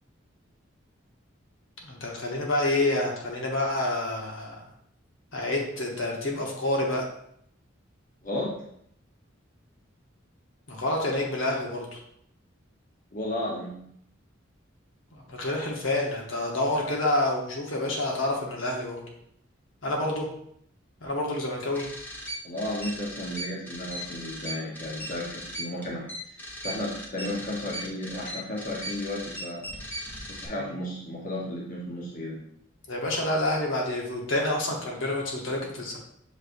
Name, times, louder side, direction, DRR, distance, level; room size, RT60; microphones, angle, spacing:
voice 1, 1.8-4.7 5.3-7.1 10.7-11.9 15.1-19.0 19.8-20.3 21.0-21.8 30.6-30.8 32.9-36.0, left 1 dB, 75° left, -1 dB, 1.0 m, -28 dB
voice 2, 13.1-13.8 22.4-26.1 26.6-29.6 30.3-32.4, left 1 dB, 40° left, -3 dB, 0.9 m, -33 dB
sound 1, 21.7-30.5, equal, 10° left, 0.9 m, -38 dB
6.6 x 3.1 x 2.6 m, 0.70 s
head